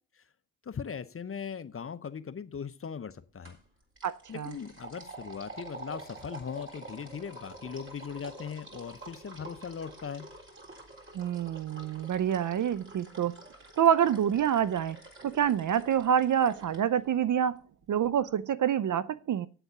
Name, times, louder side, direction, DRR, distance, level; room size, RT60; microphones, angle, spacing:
voice 1, 0.6-3.6 4.3-10.3, left 6 dB, 30° left, 0.8 m, -39 dB
sound 1, 3.4-3.7 4.0-16.8, right 2 dB, 25° right, 3.9 m, -48 dB
voice 2, 4.0-4.5 11.1-13.4 13.8-15.0 15.2-17.6 17.9-19.5, right 9 dB, 40° right, 0.6 m, -27 dB
8.0 x 7.9 x 5.8 m
supercardioid pair, 55°, 46 cm